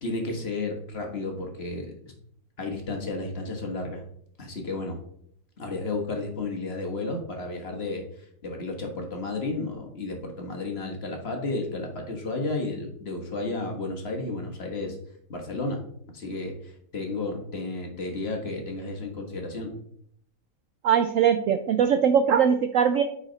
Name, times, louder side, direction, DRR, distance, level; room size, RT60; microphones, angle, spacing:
voice 1, 0.0-1.9 2.6-4.0 4.4-5.0 5.6-15.0 15.3-15.8 16.1-19.7, left 2 dB, 40° left, 2 dB, 1.5 m, -32 dB
voice 2, 20.8-23.0, right 7 dB, 75° right, 8 dB, 0.7 m, -21 dB
8.9 x 4.1 x 3.9 m, 0.67 s
omnidirectional pair, 1.9 m